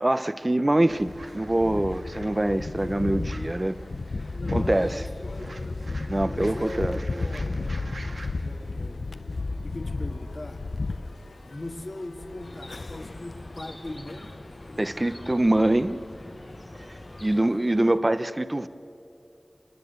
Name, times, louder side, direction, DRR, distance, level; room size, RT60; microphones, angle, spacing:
voice 1, 0.0-3.8 4.5-5.0 6.1-7.0 14.8-16.0 17.2-18.7, right 1 dB, 30° right, 13 dB, 0.8 m, -24 dB
sound 1, 0.9-17.9, left 3 dB, 85° left, 0.7 m, -34 dB
sound 2, 1.0-8.3, right 2 dB, 85° right, 2.1 m, -46 dB
voice 2, 4.3-5.8 6.3-7.6 8.3-9.1 9.6-10.6 11.4-14.4 17.1-17.6, left 1 dB, 55° left, 6 dB, 1.9 m, -40 dB
Chirp tweet, 12.4-17.4, left 1 dB, 25° left, 1.1 m, -45 dB
27.0 x 20.5 x 8.0 m, 2.7 s
wide cardioid pair, 60°, 0 cm